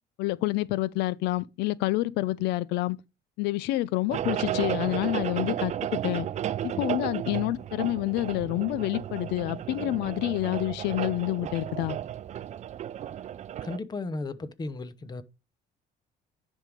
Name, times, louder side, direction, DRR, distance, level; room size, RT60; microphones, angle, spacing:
voice 1, 0.2-3.0 3.4-6.3 6.6-12.0, left 17 dB, 90° left, 0.4 m, -28 dB
sound 1, 4.1-13.8, right 11 dB, 45° right, 0.4 m, -33 dB
voice 2, 13.6-15.2, left 3 dB, 25° left, 0.8 m, -35 dB
10.5 x 3.6 x 4.8 m
cardioid pair, 110°, 17 cm